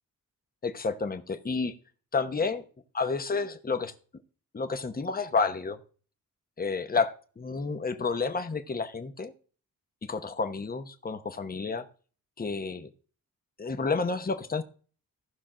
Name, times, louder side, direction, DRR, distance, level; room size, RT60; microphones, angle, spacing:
voice 1, 0.6-1.7 2.1-2.6 2.9-3.9 4.5-5.8 6.6-9.3 10.0-11.8 12.4-12.9 13.6-14.6, left 4 dB, 25° left, 8 dB, 1.0 m, -30 dB
16.0 x 5.9 x 3.8 m, 0.39 s
wide cardioid pair, 115°, 34 cm